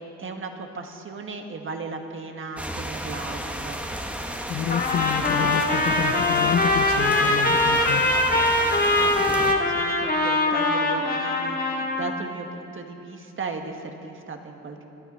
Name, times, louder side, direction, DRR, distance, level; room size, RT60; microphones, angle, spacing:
voice 1, 0.2-3.8 8.9-14.9, right 4 dB, 40° right, 4 dB, 1.5 m, -36 dB
sound 1, 2.6-9.5, equal, 5° right, 1.1 m, -33 dB
voice 2, 4.5-8.1, left 9 dB, 45° left, 8 dB, 0.5 m, -29 dB
Trumpet, 4.7-12.2, left 2 dB, 30° left, 1.6 m, -22 dB
21.5 x 12.0 x 4.3 m, 2.8 s
cardioid pair, 90°, 30 cm